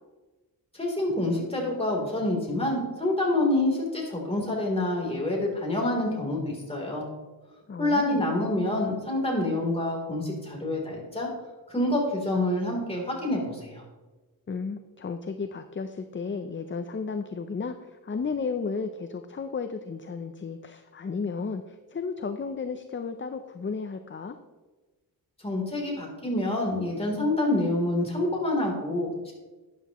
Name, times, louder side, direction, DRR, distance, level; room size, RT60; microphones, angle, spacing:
voice 1, 0.7-7.1 7.8-11.3 11.7-13.8 25.4-29.3, left 1 dB, 15° left, -2 dB, 3.5 m, -27 dB
voice 2, 7.7-8.2 14.5-24.4, left 5 dB, 30° left, 8 dB, 0.6 m, -33 dB
12.5 x 10.5 x 3.1 m, 1.2 s
wide cardioid pair, 110°, 37 cm